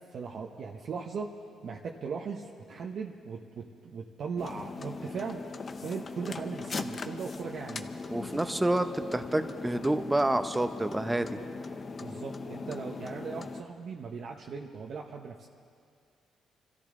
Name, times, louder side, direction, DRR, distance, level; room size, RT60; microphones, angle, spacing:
voice 1, 0.1-1.3 1.6-5.4 5.8-7.9 11.9-15.5, right 5 dB, 60° right, 0 dB, 1.0 m, -38 dB
sound 1, 4.4-13.6, left 4 dB, 40° left, 0.7 m, -40 dB
voice 2, 8.1-11.4, right 1 dB, 10° right, 9 dB, 0.8 m, -28 dB
26.5 x 13.5 x 3.8 m, 2.3 s
cardioid pair, 90°, 0 cm